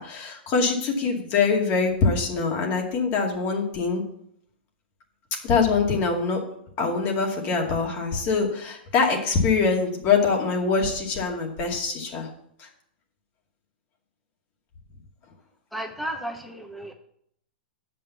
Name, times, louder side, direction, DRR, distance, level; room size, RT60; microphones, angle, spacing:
voice 1, 0.0-4.0 5.4-6.4 6.8-12.3 12.6-12.7, left 4 dB, 40° left, 1 dB, 2.3 m, -24 dB
voice 2, 15.7-16.9, right 1 dB, ahead, 3 dB, 1.1 m, -33 dB
7.6 x 5.5 x 7.0 m, 0.68 s
hypercardioid pair, 125°, 5 cm